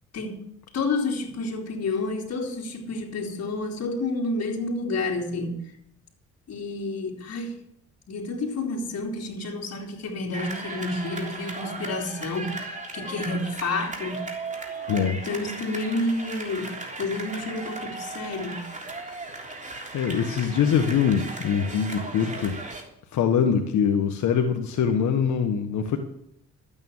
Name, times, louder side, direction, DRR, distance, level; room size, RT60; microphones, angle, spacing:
voice 1, 0.1-0.5 0.7-5.6 6.5-7.6 8.1-14.3 15.2-18.7, left 2 dB, 55° left, -1 dB, 3.6 m, -30 dB
sound 1, 10.3-22.8, right 3 dB, 25° right, 3.4 m, -36 dB
voice 2, 14.9-15.2 19.9-22.5 23.1-26.0, left 7 dB, 70° left, 5 dB, 1.4 m, -23 dB
12.5 x 8.9 x 7.3 m, 0.73 s
cardioid pair, 90°, 30 cm